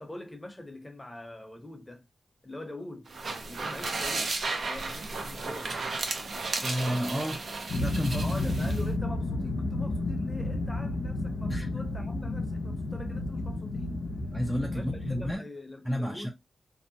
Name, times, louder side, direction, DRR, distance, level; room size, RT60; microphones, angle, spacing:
voice 1, 0.0-2.1 2.4-3.1 3.4-4.4 4.6-5.8 8.1-14.1 14.6-16.3, left 1 dB, 20° left, 0.7 m, -43 dB
sound 1, 3.1-8.8, right 3 dB, 75° right, 0.6 m, -34 dB
voice 2, 6.6-7.4 7.7-8.7 11.5-11.7 14.3-15.4 15.8-16.3, equal, 10° right, 0.4 m, -31 dB
sound 2, 7.7-15.3, left 2 dB, 80° left, 0.5 m, -32 dB
2.7 x 2.1 x 2.7 m
wide cardioid pair, 80°, 0 cm